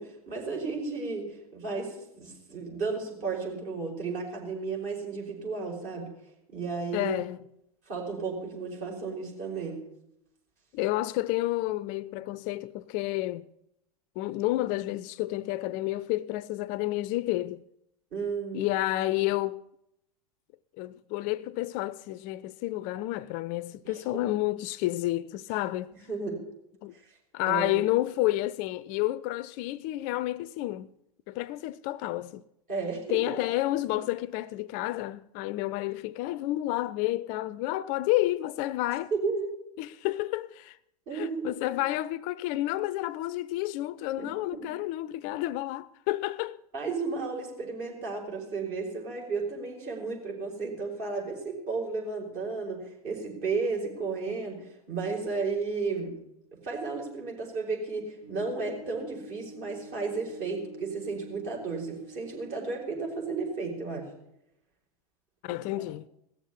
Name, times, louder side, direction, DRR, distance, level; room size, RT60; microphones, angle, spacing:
voice 1, 0.0-6.1 6.5-7.1 7.9-9.8 18.1-18.7 23.8-24.3 26.1-26.4 26.9-27.0 27.5-27.8 32.7-33.4 39.1-39.5 41.1-41.5 44.2-44.3 44.6-44.7 46.7-56.2 56.6-64.1 65.5-65.9, right 4 dB, 50° right, 5.3 m, -33 dB
voice 2, 6.9-7.4 10.7-13.5 14.2-17.6 18.5-19.6 20.8-25.9 26.8-26.9 27.3-30.9 31.3-32.4 33.1-39.1 39.8-40.8 41.1-46.6 65.4-66.1, left 16 dB, 45° left, 0.4 m, -30 dB
sound 1, 58.2-63.1, right 2 dB, 80° right, 3.1 m, -48 dB
17.5 x 7.2 x 8.4 m
hypercardioid pair, 95°, 19 cm